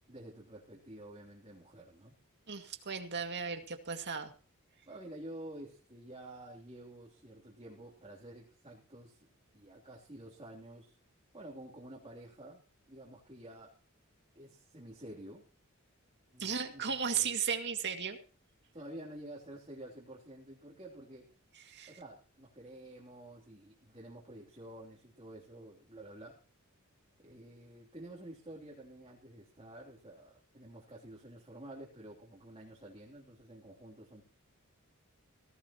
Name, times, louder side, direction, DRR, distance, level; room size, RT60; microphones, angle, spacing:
voice 1, 0.1-2.1 4.9-9.3 9.5-11.0 11.3-13.8 14.3-15.4 16.3-17.3 18.7-21.3 21.9-26.4 27.2-34.2, right 1 dB, 25° right, -3 dB, 3.1 m, -50 dB
voice 2, 2.5-4.3 16.4-18.2 21.7-21.9, right 6 dB, 55° right, 5 dB, 2.2 m, -35 dB
17.5 x 16.0 x 3.0 m, 0.38 s
head